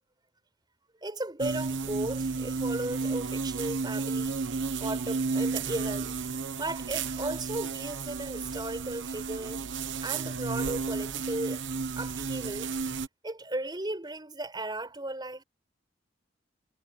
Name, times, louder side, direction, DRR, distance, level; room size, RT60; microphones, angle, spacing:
voice 1, 1.0-4.4 4.8-6.2 6.6-11.6 12.0-12.7 13.2-15.4, right 1 dB, 25° right, 5.5 m, -36 dB
sound 1, 1.4-13.1, right 4 dB, 75° right, 1.0 m, -32 dB
head